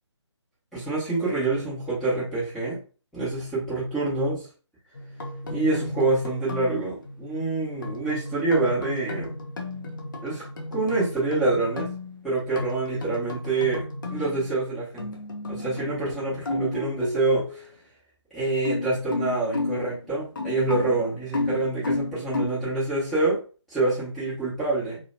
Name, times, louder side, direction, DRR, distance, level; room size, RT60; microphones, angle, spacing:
voice 1, 0.7-2.8 3.1-4.5 5.5-9.3 10.2-10.4 10.7-11.9 12.2-13.8 14.1-15.1 15.5-17.6 18.3-23.4 23.7-25.0, right 3 dB, ahead, -12 dB, 1.0 m, -26 dB
sound 1, 4.9-14.6 15.0-16.1 16.4-17.7 18.5-22.5, left 2 dB, 45° left, 0.5 m, -33 dB
2.7 x 2.1 x 2.4 m, 0.36 s
figure-of-eight pair, 150°, 16 cm